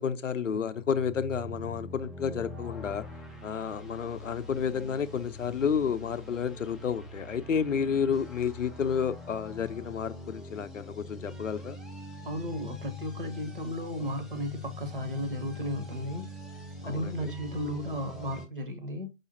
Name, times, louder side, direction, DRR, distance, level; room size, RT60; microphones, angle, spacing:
voice 1, 0.0-3.1 3.4-11.8 16.8-17.3, left 7 dB, 70° left, 0.5 m, -31 dB
sound 1, 0.6-18.5, left 2 dB, ahead, 0.3 m, -44 dB
voice 2, 12.2-16.3 16.8-19.1, equal, 40° right, 0.7 m, -34 dB
5.0 x 2.1 x 2.7 m
figure-of-eight pair, 145°, 40 cm